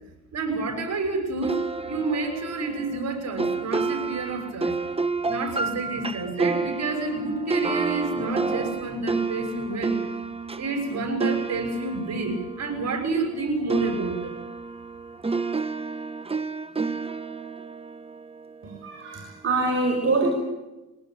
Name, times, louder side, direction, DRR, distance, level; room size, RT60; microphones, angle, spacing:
voice 1, 0.3-4.8 5.2-10.0 10.6-14.3, right 3 dB, 60° right, 6 dB, 6.5 m, -29 dB
sound 1, 1.4-13.4 13.7-18.9, right 4 dB, 20° right, 1.5 m, -30 dB
voice 2, 18.6-20.3, right 3 dB, 45° right, 0 dB, 6.4 m, -25 dB
23.5 x 18.0 x 9.0 m, 1.0 s
cardioid pair, 90°, 30 cm